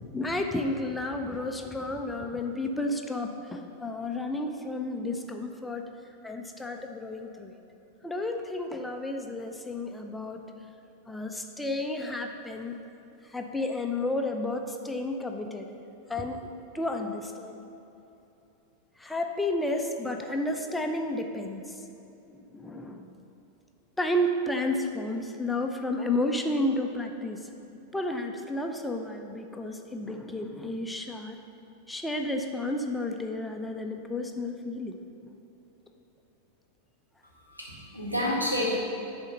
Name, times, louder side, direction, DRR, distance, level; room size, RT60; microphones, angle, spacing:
voice 1, 0.0-5.8 6.2-7.5 8.0-10.5 11.1-12.8 13.2-15.7 16.1-16.4 16.7-17.6 19.0-21.8 22.4-23.1 24.0-27.5 27.9-31.4 31.9-35.0, left 1 dB, 5° left, 3 dB, 0.6 m, -32 dB
voice 2, 37.4-38.7, left 1 dB, 85° right, -5 dB, 2.1 m, -29 dB
10.5 x 4.3 x 5.6 m, 2.9 s
figure-of-eight pair, 90°, 0 cm